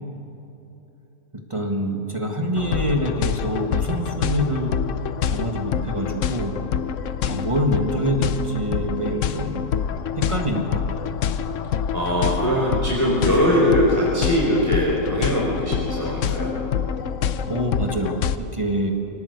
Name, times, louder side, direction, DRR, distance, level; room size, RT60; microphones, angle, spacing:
voice 1, 1.3-4.7 5.3-6.5 7.3-9.7 10.1-10.8 17.5-18.9, equal, 20° right, 3 dB, 1.7 m, -25 dB
sound 1, 2.6-18.4, left 8 dB, 60° left, 1.0 m, -26 dB
voice 2, 11.9-16.5, equal, 10° left, -4 dB, 4.0 m, -21 dB
24.0 x 18.0 x 8.1 m, 2.9 s
omnidirectional pair, 1.6 m